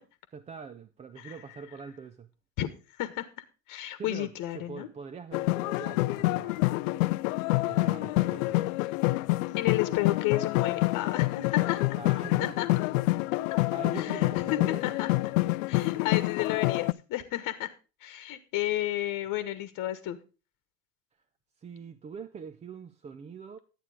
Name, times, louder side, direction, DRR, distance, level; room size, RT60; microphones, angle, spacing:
voice 1, 0.3-2.3 4.0-6.7 7.5-8.7 12.0-12.5 13.7-14.9 21.6-23.6, right 6 dB, 15° right, 0.5 m, -43 dB
voice 2, 3.0-3.3 3.7-4.9 9.6-11.8 12.4-12.7 13.5-13.6 13.9-15.1 15.7-17.7 18.0-20.2, left 14 dB, 40° left, 1.3 m, -32 dB
sound 1, 5.3-16.9, left 20 dB, 55° left, 0.5 m, -27 dB
11.5 x 8.6 x 4.9 m
hypercardioid pair, 90°, 47 cm